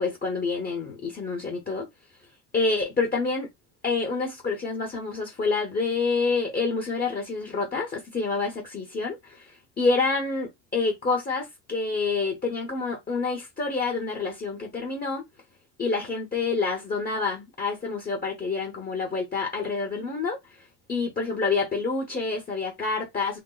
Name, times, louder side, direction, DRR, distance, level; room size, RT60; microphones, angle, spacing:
voice 1, 0.0-1.9 2.5-3.5 3.8-15.2 15.8-20.4 20.9-23.4, left 4 dB, 20° left, 0.8 m, -27 dB
3.3 x 2.0 x 3.8 m
cardioid pair, 150°, 45 cm